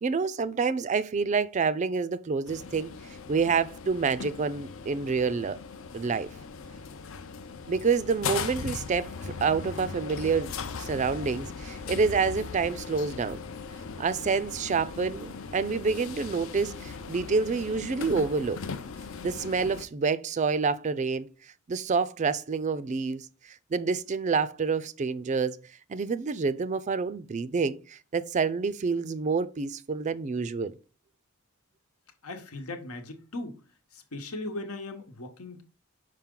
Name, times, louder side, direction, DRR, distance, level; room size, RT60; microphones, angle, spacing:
voice 1, 0.0-2.9 3.3-5.6 5.9-6.3 7.7-10.5 10.8-13.4 14.0-18.6 19.2-21.3 21.7-23.3 23.7-25.6 25.9-30.7, right 5 dB, 35° right, 0.4 m, -28 dB
sound 1, 2.5-19.9, left 5 dB, 65° left, 0.5 m, -39 dB
voice 2, 32.2-33.6 33.9-35.6, left 2 dB, 85° left, 1.1 m, -38 dB
5.8 x 4.9 x 3.7 m
head